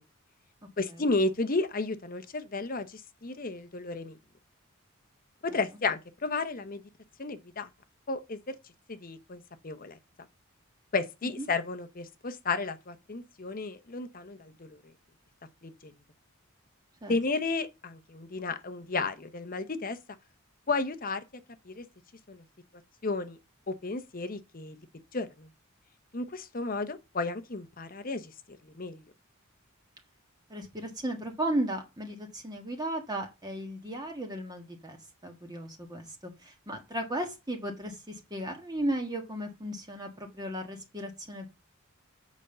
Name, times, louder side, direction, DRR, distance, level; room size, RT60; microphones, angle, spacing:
voice 1, 0.8-4.1 5.4-6.8 7.2-7.7 8.1-8.5 8.9-10.0 10.9-14.8 15.6-15.9 17.1-20.0 20.7-21.2 21.7-21.8 22.3-22.4 23.0-23.4 23.7-24.7 25.1-25.5 26.1-28.3 28.7-29.0, left 3 dB, 40° left, 0.9 m, -33 dB
voice 2, 30.5-41.5, right 1 dB, 20° right, 1.5 m, -35 dB
7.9 x 5.3 x 6.6 m
head